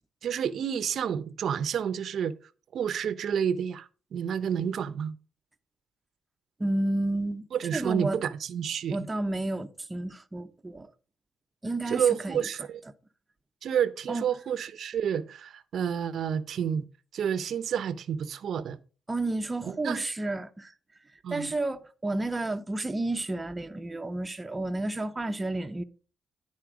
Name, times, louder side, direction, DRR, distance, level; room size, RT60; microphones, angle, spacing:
voice 1, 0.2-2.3 2.7-5.1 7.5-9.1 11.9-12.8 13.6-16.8 17.1-18.8 19.6-20.0 21.2-21.5, right 8 dB, 65° right, 0.6 m, -29 dB
voice 2, 6.6-7.5 7.7-8.2 8.9-10.9 11.6-12.4 14.1-14.3 19.1-20.7 21.3-25.8, right 2 dB, 20° right, 0.6 m, -31 dB
10.5 x 4.3 x 4.8 m
cardioid pair, 90°, 0 cm